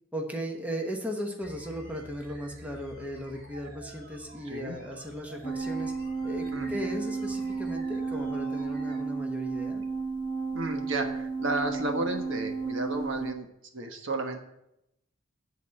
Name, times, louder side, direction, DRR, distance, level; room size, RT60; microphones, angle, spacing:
voice 1, 0.1-5.9 6.2-9.8, equal, 5° right, 1 dB, 1.0 m, -36 dB
sound 1, 1.4-9.0, right 1 dB, 45° right, 1.4 m, -50 dB
voice 2, 4.4-4.8 6.5-6.7 10.5-13.5 13.7-14.4, right 2 dB, 65° right, 4 dB, 1.3 m, -32 dB
sound 2, 5.4-13.3, right 4 dB, 25° left, 1.1 m, -33 dB
10.0 x 4.1 x 6.5 m, 0.82 s
head